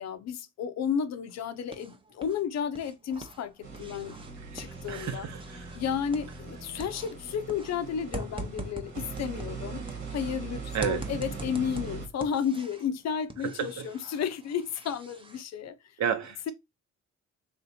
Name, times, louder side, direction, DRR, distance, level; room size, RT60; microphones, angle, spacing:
voice 1, 0.0-4.1 4.5-5.3 5.7-9.8 10.1-15.8, left 7 dB, 60° left, 0.6 m, -32 dB
sound 1, 1.3-2.4 2.7-6.5 6.8-10.4 10.8-12.9 13.3-15.4, right 3 dB, 15° right, 0.6 m, -43 dB
sound 2, 3.6-12.1, right 4 dB, 90° right, 1.7 m, -41 dB
voice 2, 4.5-5.8 10.7-11.1 13.4-13.9 16.0-16.5, right 8 dB, 65° right, 0.9 m, -32 dB
3.6 x 2.8 x 4.1 m
cardioid pair, 90°, 30 cm